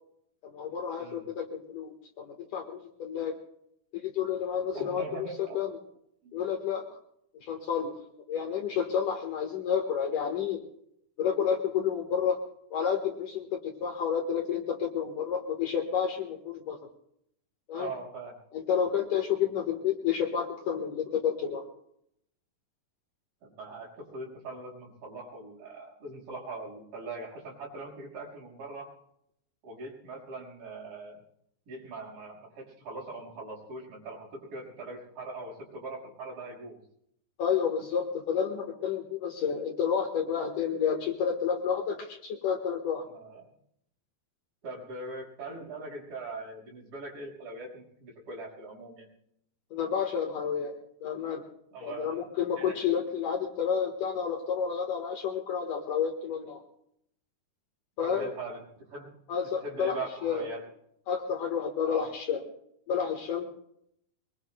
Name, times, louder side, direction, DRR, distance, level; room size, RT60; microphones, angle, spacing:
voice 1, 0.4-3.4 3.9-5.3 5.5-5.8 6.3-6.8 7.4-7.9 8.3-10.6 11.2-12.4 12.7-16.8 17.7-17.9 18.5-21.6 37.4-43.0 49.7-51.4 51.8-56.6 58.0-58.3 59.3-60.0 60.2-60.5 61.1-62.4 62.9-63.4, left 7 dB, 60° left, 2 dB, 2.6 m, -30 dB
voice 2, 1.0-1.3 4.7-5.6 6.2-6.4 17.7-18.3 23.4-28.9 29.6-31.2 31.7-36.9 43.2-43.4 44.6-49.1 51.7-52.3 52.6-52.8 58.0-59.1 59.6-60.6 61.9-62.1, right 2 dB, 60° right, -3 dB, 7.1 m, -41 dB
23.5 x 23.5 x 2.2 m, 0.74 s
omnidirectional pair, 4.6 m